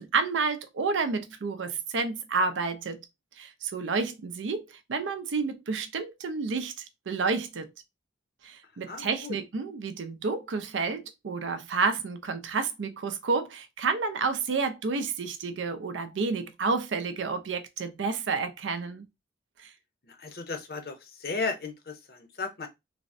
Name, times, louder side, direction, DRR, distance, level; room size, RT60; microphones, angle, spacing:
voice 1, 0.0-3.0 3.4-7.7 8.4-19.0 19.6-19.7, right 4 dB, 90° right, 0.5 m, -30 dB
voice 2, 8.9-9.4 20.1-22.7, left 4 dB, 55° left, 0.6 m, -35 dB
3.3 x 2.0 x 2.6 m
head